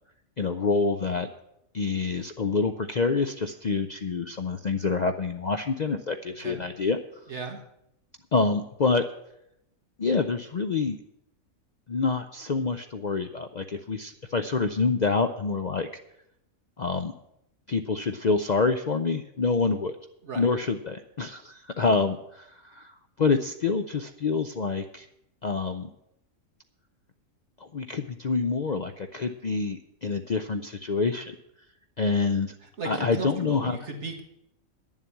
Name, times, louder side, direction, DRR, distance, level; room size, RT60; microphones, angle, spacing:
voice 1, 0.4-1.3 1.7-7.0 8.3-9.0 10.0-11.0 11.9-15.9 16.8-17.1 17.7-19.9 20.4-25.1 25.4-25.9 27.6-31.4 32.0-32.5 32.8-33.8, left 4 dB, 60° left, 7 dB, 0.4 m, -27 dB
voice 2, 7.3-7.6 20.2-20.5 32.6-34.2, right 3 dB, 55° right, 3 dB, 1.7 m, -36 dB
10.5 x 7.4 x 8.4 m, 0.79 s
omnidirectional pair, 1.4 m